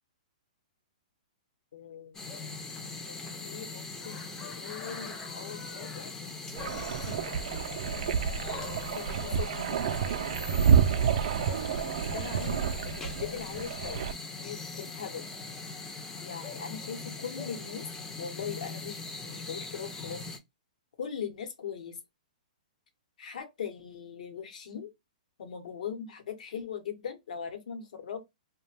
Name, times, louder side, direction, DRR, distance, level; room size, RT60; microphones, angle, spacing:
voice 1, 1.7-2.2 3.0-6.1 7.1-7.3 8.0-10.2 11.5-14.0 14.4-15.2 16.2-17.8 18.2-20.4 21.0-22.0 23.2-24.9 25.4-28.2, left 7 dB, 70° left, 0.8 m, -41 dB
sound 1, 2.1-20.4, left 3 dB, 15° left, 0.4 m, -40 dB
sound 2, 6.6-14.1, right 7 dB, 60° right, 0.4 m, -29 dB
2.4 x 2.1 x 3.2 m
hypercardioid pair, 145°, 4 cm